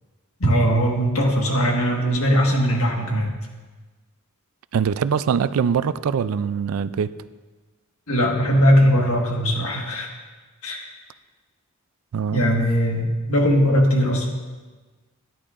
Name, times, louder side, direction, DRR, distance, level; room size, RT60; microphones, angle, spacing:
voice 1, 0.4-3.3 8.1-10.1 10.6-10.9 12.3-14.3, equal, 80° left, 0 dB, 1.6 m, -19 dB
voice 2, 4.7-7.1 12.1-12.4, right 7 dB, 75° right, 14 dB, 0.4 m, -22 dB
13.5 x 10.5 x 2.5 m, 1.3 s
head